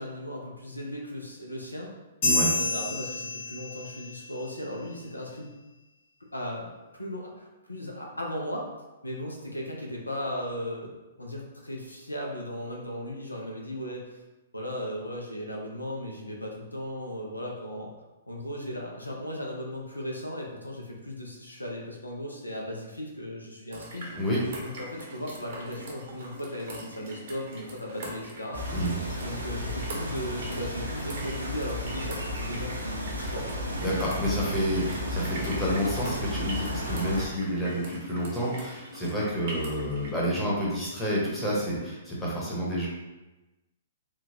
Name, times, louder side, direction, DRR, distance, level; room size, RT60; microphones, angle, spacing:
voice 1, 0.0-1.9 2.5-5.5 6.3-6.7 7.0-8.7 9.0-10.9 11.2-14.2 14.5-17.9 18.3-24.1 24.6-28.6 29.2-33.5 33.8-33.9, equal, 85° left, -1 dB, 0.6 m, -36 dB
sound 1, 2.2-4.1, left 2 dB, 50° left, 1.3 m, -28 dB
voice 2, 2.2-2.5 24.1-24.4 28.7-29.0 33.8-42.9, equal, 10° left, -7 dB, 1.0 m, -29 dB
sound 2, 23.7-40.1, right 1 dB, 50° right, 0.8 m, -42 dB
sound 3, 28.5-37.3, left 1 dB, 85° right, 0.7 m, -33 dB
3.7 x 2.3 x 2.8 m, 1.1 s
figure-of-eight pair, 115°, 0 cm